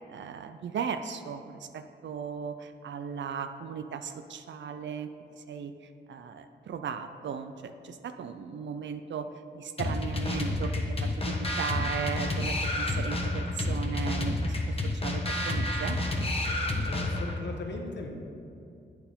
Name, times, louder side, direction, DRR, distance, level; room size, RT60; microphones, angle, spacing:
voice 1, 0.0-5.1 5.5-5.7 6.1-9.3 9.5-10.7 11.0-14.8 15.0-16.0, right 6 dB, 75° right, 8 dB, 0.4 m, -37 dB
sound 1, 9.8-17.4, left 1 dB, 30° left, 1.1 m, -30 dB
voice 2, 16.8-18.1, left 3 dB, 70° left, 2 dB, 1.1 m, -38 dB
8.7 x 4.6 x 5.3 m, 2.6 s
cardioid pair, 80°, 19 cm